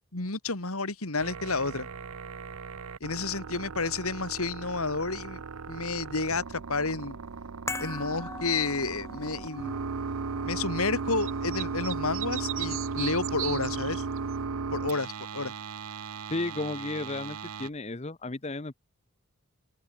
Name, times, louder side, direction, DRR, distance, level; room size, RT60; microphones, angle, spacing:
voice 1, 0.1-1.9 3.0-5.4 5.7-7.2 7.8-9.8 10.4-14.0 14.7-15.5, left 3 dB, 80° left, 3.0 m, -31 dB
sound 1, 1.2-17.7, right 4 dB, 85° right, 0.8 m, -36 dB
sound 2, 7.7-14.1 14.4-14.5, left 2 dB, 15° left, 7.6 m, -43 dB
sound 3, 11.2-14.4, right 15 dB, 65° right, 1.7 m, -36 dB
voice 2, 16.3-18.8, left 2 dB, 30° left, 0.8 m, -33 dB
open air
head